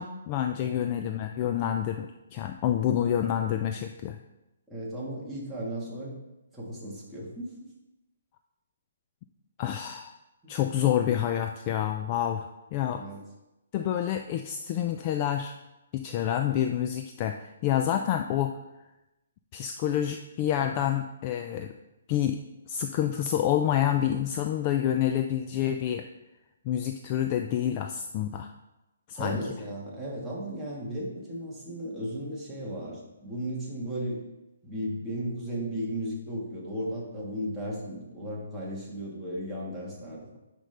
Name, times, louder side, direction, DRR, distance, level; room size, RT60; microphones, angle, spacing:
voice 1, 0.0-4.2 9.6-10.1 10.5-13.0 13.7-15.5 15.9-18.6 19.5-21.7 22.1-22.4 22.7-26.0 26.7-28.5 29.1-29.4, left 10 dB, 25° left, 5 dB, 0.3 m, -28 dB
voice 2, 4.7-6.2 6.5-7.5 10.4-10.7 12.9-13.2 20.6-20.8 29.2-34.2 34.6-40.4, right 1 dB, 5° right, -7 dB, 1.5 m, -35 dB
9.8 x 5.3 x 3.3 m, 0.98 s
hypercardioid pair, 170°, 0 cm